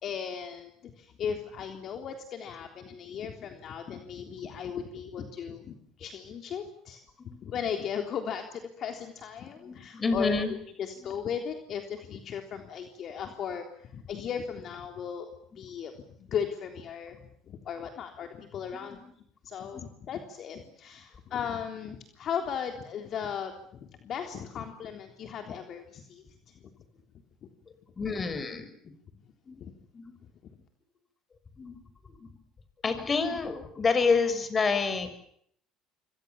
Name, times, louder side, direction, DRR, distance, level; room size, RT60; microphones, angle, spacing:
voice 1, 0.0-10.4 10.8-15.3 15.6-19.0 19.4-26.7 27.4-27.5 29.6-29.7, left 7 dB, 55° left, 5 dB, 3.6 m, -37 dB
voice 2, 9.5-10.5 18.8-19.0 19.7-19.9 28.0-28.9 29.5-29.6 29.9-30.1 31.6-31.8 32.2-32.3 32.8-35.1, left 4 dB, 30° left, 11 dB, 6.2 m, -28 dB
27.5 x 24.5 x 7.3 m, 0.67 s
supercardioid pair, 80°, 0 cm